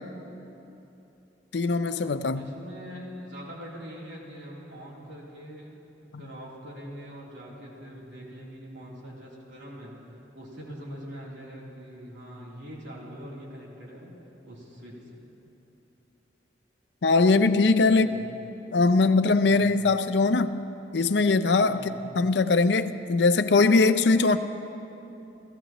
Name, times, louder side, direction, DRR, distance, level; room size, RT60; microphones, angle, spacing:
voice 1, 1.5-2.5 6.1-6.2 17.0-18.1 18.7-20.6 20.9-24.4, left 3 dB, 65° left, 11 dB, 0.5 m, -21 dB
voice 2, 2.3-5.8 6.2-9.9 10.3-14.1 14.4-15.2 17.9-18.2 19.4-19.9 21.7-22.0, equal, 80° right, -5 dB, 3.3 m, -43 dB
29.0 x 14.5 x 3.0 m, 2.9 s
head